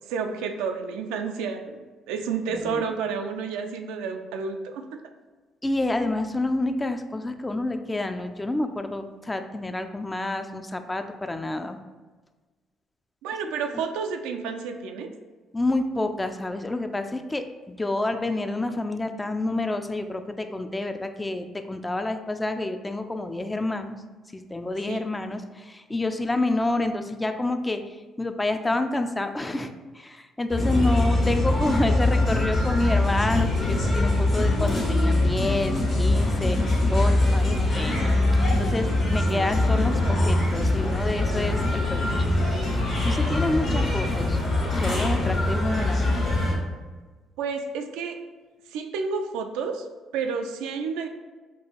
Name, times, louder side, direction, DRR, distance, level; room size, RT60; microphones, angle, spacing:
voice 1, 0.1-5.0 13.2-15.1 24.9-25.1 46.0-46.2 47.4-48.2 48.7-49.9 50.1-51.1, right 5 dB, 80° right, 5 dB, 0.3 m, -30 dB
voice 2, 2.5-2.8 5.6-11.8 15.5-24.0 24.3-38.1 38.4-42.4 43.0-44.4 44.7-46.1, left 2 dB, 20° left, 7 dB, 0.3 m, -28 dB
sound 1, 30.5-46.5, left 2 dB, 65° left, 1.4 m, -23 dB
4.5 x 2.4 x 2.9 m, 1.3 s
hypercardioid pair, 55°, 0 cm